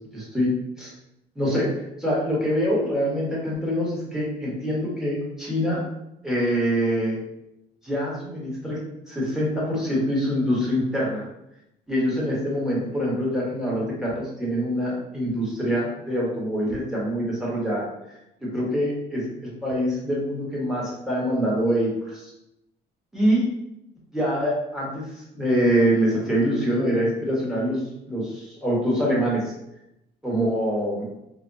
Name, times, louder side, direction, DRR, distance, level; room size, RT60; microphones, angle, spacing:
voice 1, 0.1-0.5 0.8-0.9 1.3-1.7 2.0-5.8 6.2-7.2 7.8-8.8 9.1-11.2 11.9-17.9 18.4-22.3 23.1-23.4 24.1-27.8 28.1-29.5 30.2-31.1, equal, 5° right, -6 dB, 1.3 m, -25 dB
3.3 x 2.2 x 2.6 m, 0.85 s
cardioid pair, 110°, 17 cm